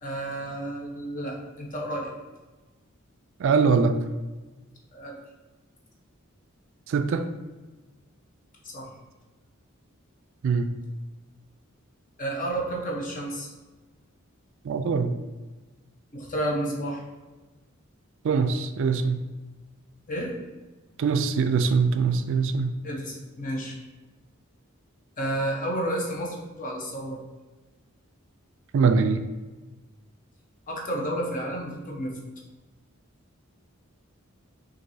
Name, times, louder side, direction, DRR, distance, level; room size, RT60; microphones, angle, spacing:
voice 1, 0.0-2.1 4.9-5.2 8.6-8.9 12.2-13.5 16.1-17.0 20.1-20.3 22.8-23.8 25.2-27.2 30.7-32.2, right 1 dB, 40° left, -1 dB, 0.9 m, -31 dB
voice 2, 3.4-4.0 6.9-7.3 10.4-10.7 14.6-15.1 18.2-19.2 21.0-22.7 28.7-29.2, right 5 dB, 65° right, 8 dB, 0.3 m, -22 dB
6.0 x 2.6 x 2.7 m, 1.2 s
head